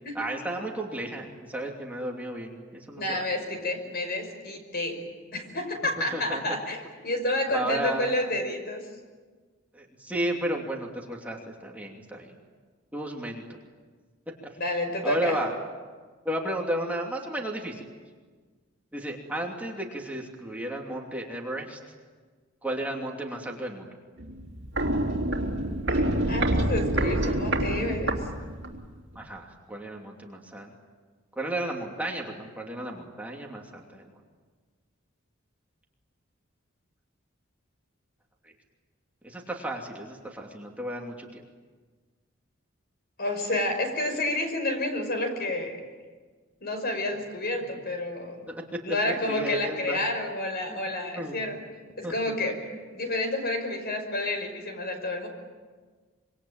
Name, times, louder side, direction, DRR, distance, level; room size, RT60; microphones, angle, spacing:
voice 1, 0.1-3.2 6.1-6.4 7.5-8.1 9.7-12.3 12.9-13.4 15.0-15.5 16.2-17.8 18.9-21.8 22.6-23.9 29.1-30.7 31.4-34.0 39.2-41.4 48.7-48.8 49.3-50.0 50.7-50.8 51.2-51.4 52.0-52.1 52.5-52.6, right 1 dB, 10° right, -1 dB, 2.9 m, -33 dB
voice 2, 3.0-5.0 5.3-8.8 14.6-15.4 25.9-28.2 43.2-45.7 46.6-48.4 48.9-51.6 52.0-52.6 52.9-55.3, left 1 dB, 50° left, 5 dB, 5.7 m, -30 dB
Walk footsteps, 24.2-28.9 29.2-29.3, right 1 dB, 60° right, 3.4 m, -27 dB
26.5 x 24.5 x 9.0 m, 1.4 s
head